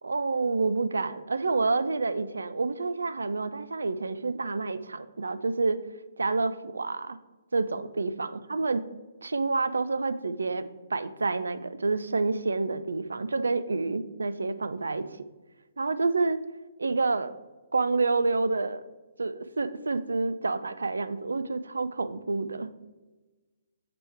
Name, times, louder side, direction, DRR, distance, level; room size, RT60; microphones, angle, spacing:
voice 1, 0.0-5.8 6.2-7.2 7.5-8.8 9.2-15.2 15.8-16.4 16.8-17.3 17.7-18.8 19.2-22.7, right 3 dB, 80° right, 13 dB, 0.4 m, -28 dB
6.8 x 3.5 x 4.4 m, 1.2 s
figure-of-eight pair, 135°, 0 cm